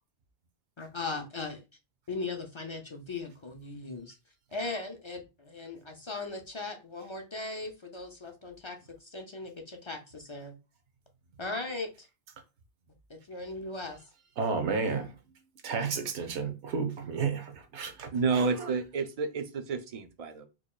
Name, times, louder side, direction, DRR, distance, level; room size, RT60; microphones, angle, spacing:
voice 1, 0.8-1.6 2.1-4.2 4.5-10.5 11.4-12.1 13.1-14.0, left 3 dB, 45° left, 0.4 m, -38 dB
voice 2, 14.4-15.1 15.6-18.7, right 5 dB, 80° right, 1.0 m, -32 dB
voice 3, 18.1-20.4, right 4 dB, 60° right, 0.4 m, -30 dB
4.5 x 2.9 x 2.3 m
omnidirectional pair, 1.1 m